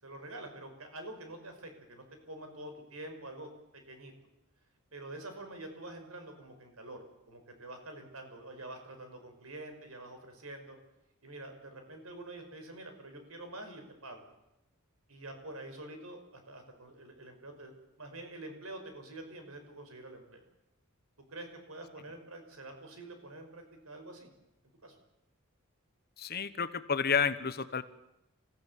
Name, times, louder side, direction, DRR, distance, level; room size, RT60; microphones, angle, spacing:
voice 1, 0.0-4.1 4.9-10.8 11.2-14.2 15.1-17.7 18.0-20.4 21.3-24.3 24.8-25.0, right 2 dB, 80° right, 6 dB, 5.5 m, -47 dB
voice 2, 26.2-27.8, left 6 dB, 45° left, 13 dB, 1.1 m, -30 dB
29.0 x 15.5 x 8.3 m, 0.89 s
head